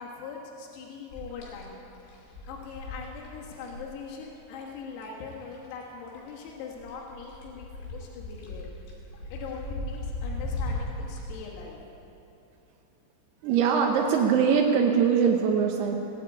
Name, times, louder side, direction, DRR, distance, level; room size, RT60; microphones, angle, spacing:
voice 1, 0.0-1.8 2.1-8.7 9.3-11.8, left 5 dB, 90° left, -2 dB, 4.4 m, -41 dB
sound 1, 1.1-5.9 6.2-11.4, left 2 dB, 60° left, 4.4 m, -37 dB
voice 2, 13.4-16.0, right 6 dB, 85° right, 1 dB, 2.3 m, -22 dB
17.5 x 9.3 x 8.4 m, 2.9 s
omnidirectional pair, 6.0 m